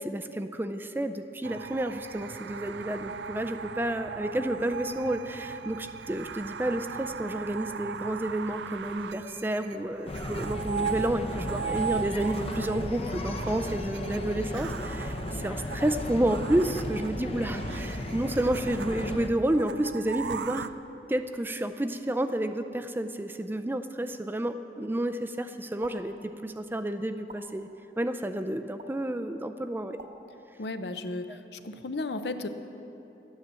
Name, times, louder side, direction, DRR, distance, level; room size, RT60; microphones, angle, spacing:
voice 1, 0.0-20.7 21.1-27.7 28.0-30.0 31.3-31.4, right 1 dB, 10° right, 8 dB, 0.4 m, -30 dB
sound 1, 1.4-20.7, right 7 dB, 80° right, 0.4 m, -38 dB
sound 2, 10.1-19.3, left 1 dB, 35° left, 0.7 m, -35 dB
sound 3, 25.8-26.0 27.3-27.4 28.8-28.9 30.0-30.1, right 3 dB, 40° right, 0.9 m, -45 dB
voice 2, 30.6-32.5, left 2 dB, 70° left, 9 dB, 0.7 m, -34 dB
12.0 x 9.6 x 7.5 m, 3.0 s
head